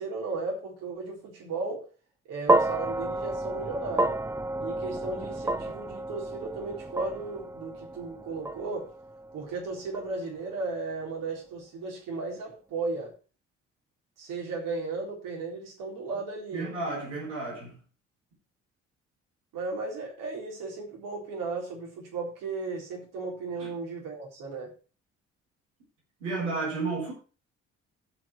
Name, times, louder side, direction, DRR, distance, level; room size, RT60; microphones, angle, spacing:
voice 1, 0.0-1.8 2.3-4.2 4.6-8.9 9.3-13.1 14.2-16.7 19.5-24.7, right 3 dB, 65° right, 4.0 m, -35 dB
sound 1, 2.5-10.8, right 2 dB, 10° right, 0.5 m, -31 dB
voice 2, 16.5-17.8 23.5-23.7 26.2-27.1, right 3 dB, 85° right, 3.7 m, -32 dB
16.0 x 6.2 x 4.3 m
figure-of-eight pair, 45°, 35 cm